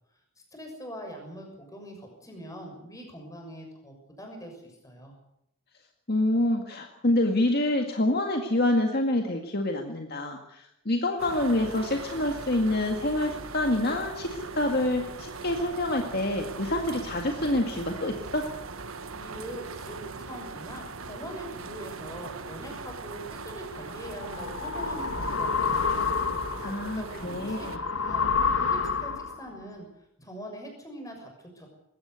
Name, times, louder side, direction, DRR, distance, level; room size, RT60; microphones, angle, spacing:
voice 1, 0.5-5.1 19.1-26.1 26.6-27.7 28.0-29.9 30.2-31.7, equal, 15° left, 3 dB, 6.5 m, -42 dB
voice 2, 6.1-18.5 26.6-27.8, left 1 dB, 50° left, 3 dB, 2.0 m, -27 dB
sound 1, 11.2-27.8, right 4 dB, 80° right, 1.4 m, -40 dB
sound 2, 23.7-29.5, left 5 dB, 70° left, 2.1 m, -29 dB
20.5 x 17.0 x 8.2 m, 0.79 s
head